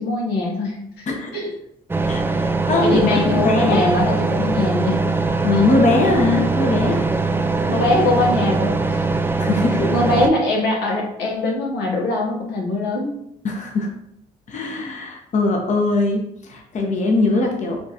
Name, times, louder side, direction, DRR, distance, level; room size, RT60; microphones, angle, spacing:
voice 1, 0.0-1.1 1.3-1.5 2.8-5.0 5.5-5.6 7.7-9.2 9.9-13.2, left 2 dB, 80° left, 0 dB, 1.0 m, -22 dB
sound 1, 1.9-10.3, right 3 dB, 15° right, 0.4 m, -21 dB
voice 2, 2.1-3.9 5.4-7.0 9.4-9.9 13.4-13.9 14.5-17.8, left 2 dB, 50° left, 2 dB, 0.9 m, -21 dB
6.7 x 2.5 x 2.8 m, 0.75 s
supercardioid pair, 70°, 17 cm